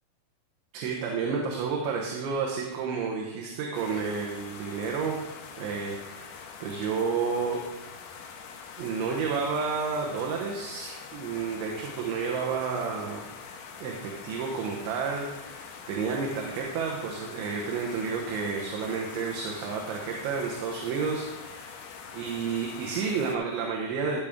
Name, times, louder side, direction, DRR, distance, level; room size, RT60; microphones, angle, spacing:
voice 1, 0.7-5.2 5.6-7.7 8.8-13.2 13.8-21.7 22.1-24.2, right 5 dB, 80° right, -1 dB, 3.3 m, -31 dB
sound 1, 3.7-23.4, left 6 dB, 75° left, 2.5 m, -44 dB
13.5 x 7.1 x 3.6 m, 1.0 s
omnidirectional pair, 5.5 m